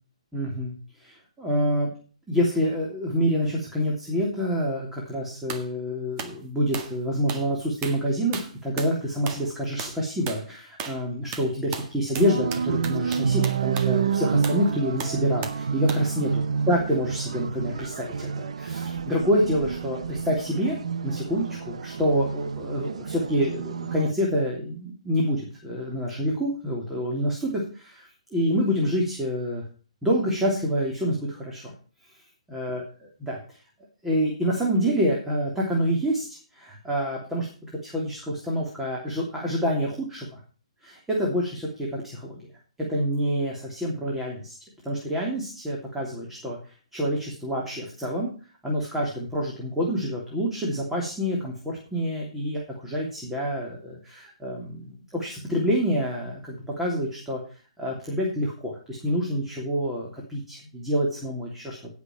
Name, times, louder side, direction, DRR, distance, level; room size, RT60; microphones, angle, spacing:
voice 1, 0.3-1.9 2.3-20.8 21.0-29.7 30.0-31.7 32.5-32.8 33.2-33.6 34.0-37.5 37.8-40.4 40.8-42.4 42.9-44.5 44.8-46.6 46.9-48.3 48.6-57.4 57.8-61.8, equal, 5° right, -3 dB, 3.2 m, -27 dB
sound 1, 5.5-5.7 6.2-6.4 6.7-7.0 7.3-7.5 7.8-8.0 8.3-9.0 9.3-9.5 9.8-10.0 10.3-10.4 10.8-11.0 11.3-14.0 14.4-14.6 15.0-15.6 15.9-16.1, right 6 dB, 30° right, 1.8 m, -36 dB
sound 2, 12.1-24.1, right 6 dB, 65° right, 0.9 m, -29 dB
17.0 x 6.1 x 4.6 m, 0.37 s
hypercardioid pair, 145°, 4 cm